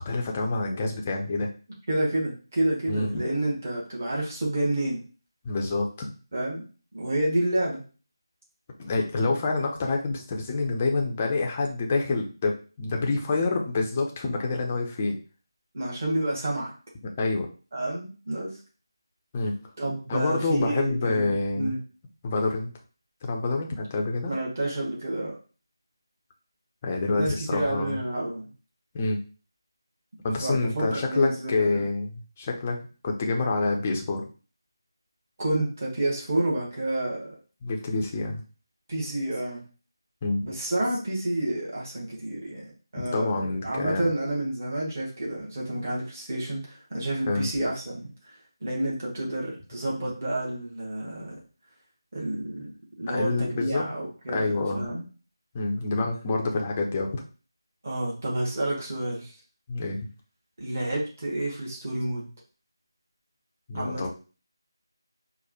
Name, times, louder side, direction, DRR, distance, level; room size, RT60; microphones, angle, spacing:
voice 1, 0.0-1.5 2.9-3.2 5.4-6.1 8.8-15.2 17.2-17.5 19.3-19.6 20.1-21.7 22.2-22.7 23.2-24.3 26.8-28.0 28.9-29.2 30.2-32.8 33.0-34.2 37.6-38.4 40.2-40.4 43.0-44.0 47.3-47.5 53.1-53.9 54.3-54.9 55.5-57.2 59.7-60.0 63.7-64.1, left 3 dB, 15° left, 1 dB, 0.4 m, -27 dB
voice 2, 1.9-5.0 6.3-6.6 6.9-7.8 15.7-16.7 17.7-18.5 19.8-21.8 24.2-25.3 27.1-28.5 30.4-31.8 35.4-37.4 38.9-39.6 40.4-43.3 43.6-48.1 48.6-51.4 52.1-52.7 53.0-55.0 57.8-59.3 60.6-62.3 63.7-64.1, right 1 dB, 35° right, -3 dB, 1.2 m, -29 dB
4.6 x 2.1 x 2.8 m, 0.36 s
figure-of-eight pair, 160°, 2 cm